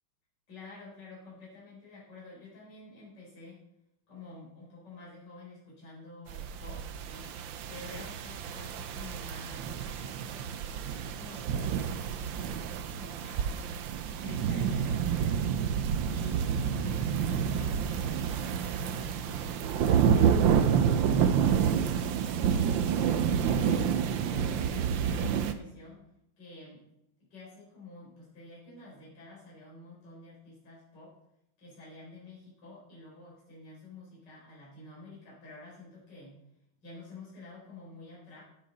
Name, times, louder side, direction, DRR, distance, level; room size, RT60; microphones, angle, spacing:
voice 1, 0.5-3.6 4.1-7.3 7.7-10.7 11.1-13.6 14.2-15.5 16.1-19.4 19.9-23.3 23.6-23.9 24.2-26.0 26.4-26.8 27.3-31.2 31.6-36.4 36.8-38.4, left 3 dB, 50° left, -7 dB, 4.9 m, -49 dB
sound 1, 6.3-25.5, right 7 dB, 70° right, 1.4 m, -29 dB
10.5 x 10.5 x 4.2 m, 0.82 s
omnidirectional pair, 2.3 m